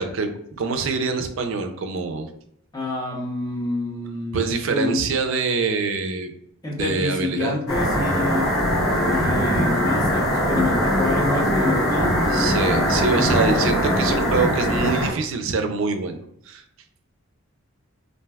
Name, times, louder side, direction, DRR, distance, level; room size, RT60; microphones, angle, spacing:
voice 1, 0.0-2.3 4.3-6.3 6.8-7.6 12.3-16.6, right 4 dB, 65° right, 7 dB, 0.4 m, -25 dB
voice 2, 2.7-5.0 6.6-8.5 9.1-12.4 13.5-13.6, left 2 dB, 15° left, -3 dB, 0.6 m, -28 dB
sound 1, 7.7-15.1, equal, 80° left, 1.0 m, -21 dB
2.5 x 2.2 x 3.3 m, 0.71 s
head